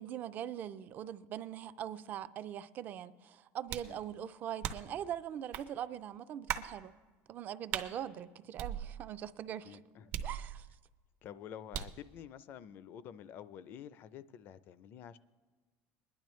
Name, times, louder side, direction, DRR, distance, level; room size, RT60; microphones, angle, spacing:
voice 1, 0.0-7.0 7.3-9.8 10.2-10.7, right 10 dB, 35° right, 0.3 m, -42 dB
sound 1, 3.7-4.0 4.6-5.0 5.5-5.7 6.5-6.7 7.7-7.9 8.6-9.2 10.1-10.8 11.7-12.0, right 10 dB, 65° right, 0.7 m, -39 dB
voice 2, 9.7-10.3 11.2-15.2, left 9 dB, 40° left, 0.4 m, -49 dB
22.5 x 10.5 x 3.1 m
cardioid pair, 165°, 5 cm